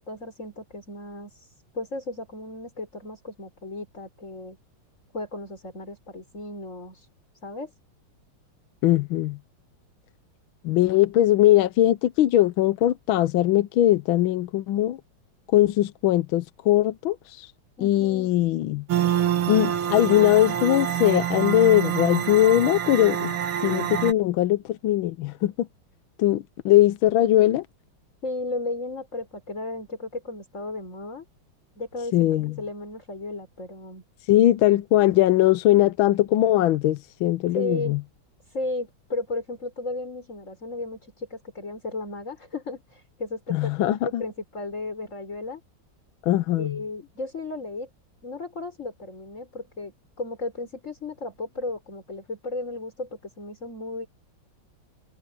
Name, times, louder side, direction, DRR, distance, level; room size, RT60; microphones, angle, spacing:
voice 1, 0.0-4.6 5.1-7.1 7.4-7.7 17.8-18.3 28.2-31.2 31.8-32.3 32.6-34.0 37.5-38.0 38.5-45.6 46.6-47.9 48.2-54.1, left 2 dB, 35° left, 5.4 m, -34 dB
voice 2, 8.8-9.4 10.6-15.0 15.5-17.5 17.8-18.8 19.5-23.3 23.6-25.7 26.2-27.7 32.1-32.5 34.3-38.0 43.5-44.2 46.2-46.8, left 14 dB, 80° left, 1.4 m, -20 dB
sound 1, 18.9-24.1, right 10 dB, 80° right, 2.4 m, -26 dB
omnidirectional pair, 2.3 m